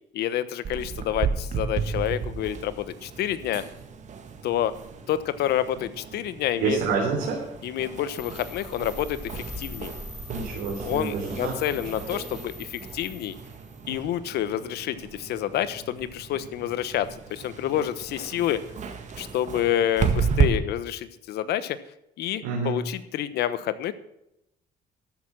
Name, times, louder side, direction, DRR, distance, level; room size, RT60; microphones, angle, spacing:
voice 1, 0.1-3.6 4.4-4.7 5.1-6.8 7.6-9.9 10.8-13.4 13.9-18.6 19.2-21.8 22.2-23.9, left 11 dB, 75° left, 14 dB, 1.1 m, -28 dB
sound 1, 0.6-20.5, right 6 dB, 45° right, 1.8 m, -33 dB
voice 2, 6.6-7.4 10.3-12.1 22.4-22.8, right 5 dB, 90° right, -3 dB, 3.7 m, -28 dB
sound 2, 8.2-13.9, left 1 dB, ahead, 4.3 m, -42 dB
13.5 x 8.9 x 6.0 m, 0.82 s
cardioid pair, 110°, 17 cm